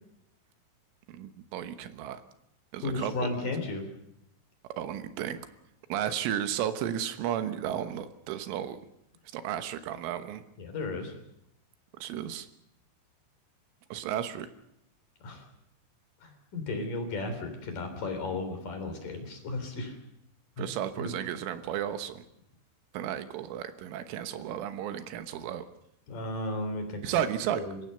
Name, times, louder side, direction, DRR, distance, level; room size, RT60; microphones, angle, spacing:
voice 1, 1.1-2.2 2.7-3.5 4.8-5.5 5.9-8.8 9.3-10.4 11.9-12.5 13.9-14.5 20.6-22.2 22.9-25.7 27.0-27.6, right 10 dB, 80° right, 10 dB, 3.7 m, -33 dB
voice 2, 2.8-3.8 10.6-11.1 15.2-15.4 16.2-19.9 21.0-21.1 26.1-27.0 27.5-27.8, left 2 dB, 45° left, 6 dB, 4.5 m, -34 dB
28.0 x 16.0 x 6.8 m, 0.81 s
omnidirectional pair, 5.6 m